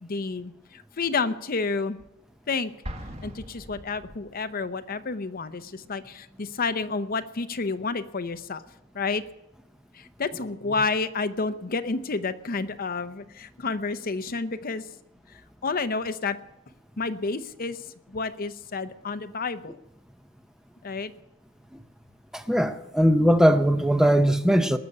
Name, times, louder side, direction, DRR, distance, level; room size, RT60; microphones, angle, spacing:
voice 1, 0.0-2.0 2.5-2.7 3.2-8.6 8.9-9.2 9.9-15.0 15.3-16.4 17.0-19.8 20.8-21.1, left 4 dB, 45° left, 0.7 m, -30 dB
Explosion, 2.8-4.5, equal, 30° right, 1.6 m, -40 dB
voice 2, 22.3-24.8, equal, 5° right, 0.7 m, -20 dB
20.0 x 6.9 x 9.8 m
head